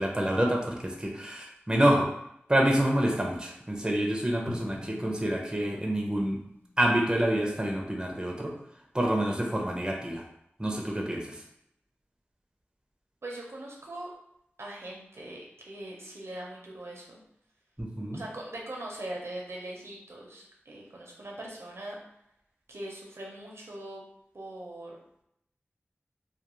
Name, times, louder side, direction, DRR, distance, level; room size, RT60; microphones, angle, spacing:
voice 1, 0.0-2.1 2.5-6.4 6.8-8.5 8.9-10.2 10.6-11.4 17.8-18.2, right 1 dB, 20° right, 0 dB, 0.5 m, -27 dB
Drum, 4.5-7.4, left 1 dB, 50° left, 0.4 m, -43 dB
voice 2, 13.2-14.1 14.6-17.2 18.1-22.0 22.7-24.0 24.3-25.0, right 1 dB, 80° right, -2 dB, 0.6 m, -41 dB
2.3 x 2.3 x 3.0 m, 0.77 s
wide cardioid pair, 45°, 4 cm